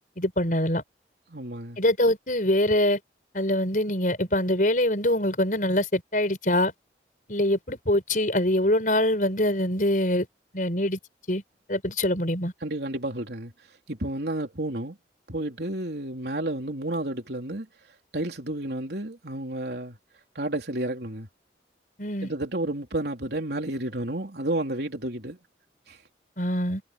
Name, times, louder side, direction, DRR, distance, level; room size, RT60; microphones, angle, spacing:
voice 1, 0.2-0.8 1.8-3.0 3.3-6.7 7.3-10.3 10.5-11.0 11.3-11.4 11.7-12.5 22.0-22.3 26.4-26.8, left 1 dB, 45° left, 5.9 m, -24 dB
voice 2, 1.3-1.8 12.6-13.5 13.9-15.0 15.3-17.7 18.1-20.0 20.4-21.3 22.2-25.4 25.9-26.0, right 1 dB, 65° right, 3.7 m, -31 dB
head